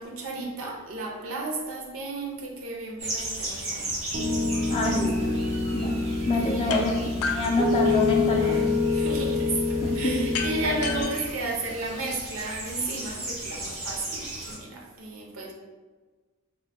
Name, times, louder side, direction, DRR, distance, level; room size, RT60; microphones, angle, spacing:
voice 1, 0.0-4.0 6.3-6.8 8.9-15.5, right 2 dB, 70° right, 0 dB, 0.6 m, -33 dB
sound 1, 3.0-14.6, right 1 dB, 90° right, 1.4 m, -37 dB
Piano, 4.1-11.0, left 3 dB, 30° right, 0.4 m, -26 dB
voice 2, 4.7-5.1 5.7-5.9 6.3-7.0 7.3-8.6 9.8-10.1, left 2 dB, 25° left, 0 dB, 0.4 m, -26 dB
sound 2, 6.7-6.8 7.2-8.4 10.3-12.3, left 5 dB, 90° left, 0.4 m, -33 dB
3.6 x 2.1 x 3.3 m, 1.3 s
head